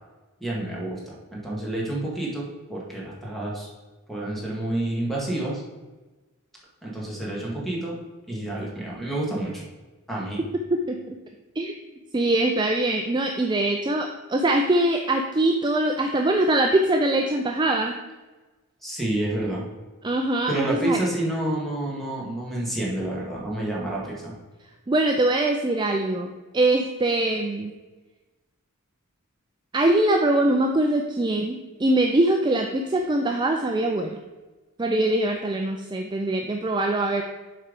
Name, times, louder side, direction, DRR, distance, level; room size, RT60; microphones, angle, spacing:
voice 1, 0.4-3.7 4.1-5.6 6.8-8.0 8.3-9.6 10.1-10.4 18.8-19.7 20.5-24.3, right 1 dB, ahead, -4 dB, 1.9 m, -29 dB
voice 2, 12.1-18.0 20.0-21.0 24.9-27.7 29.7-34.2 34.8-37.2, right 1 dB, 20° right, 3 dB, 0.4 m, -23 dB
7.5 x 4.6 x 5.1 m, 1.2 s
head